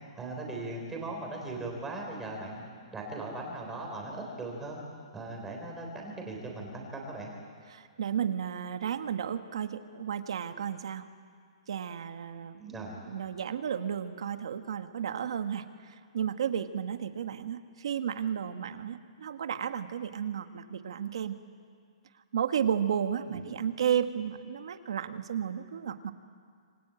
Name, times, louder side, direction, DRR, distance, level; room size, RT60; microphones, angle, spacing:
voice 1, 0.1-2.6 2.9-4.8 5.1-7.3 12.6-13.0 23.3-23.5, right 2 dB, 5° right, 0 dB, 3.9 m, -39 dB
voice 2, 7.7-11.1 11.7-12.6 13.1-21.3 22.3-26.1, right 8 dB, 55° right, 9 dB, 1.4 m, -33 dB
26.5 x 24.5 x 9.0 m, 2.1 s
hypercardioid pair, 180°, 3 cm